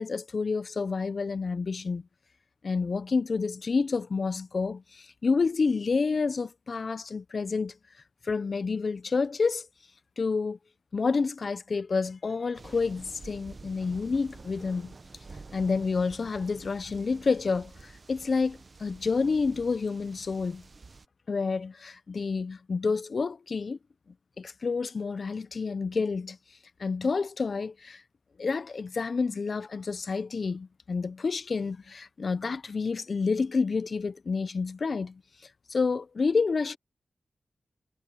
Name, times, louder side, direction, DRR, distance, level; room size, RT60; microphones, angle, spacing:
voice 1, 0.0-2.1 2.6-7.7 8.2-9.7 10.2-10.6 10.9-14.9 15.5-20.6 21.3-23.8 24.4-26.4 26.8-28.0 28.4-35.2 35.7-36.8, left 4 dB, 60° left, 0.6 m, -29 dB
sound 1, 12.6-21.1, right 3 dB, 50° right, 1.2 m, -49 dB
cardioid pair, 60°, 0 cm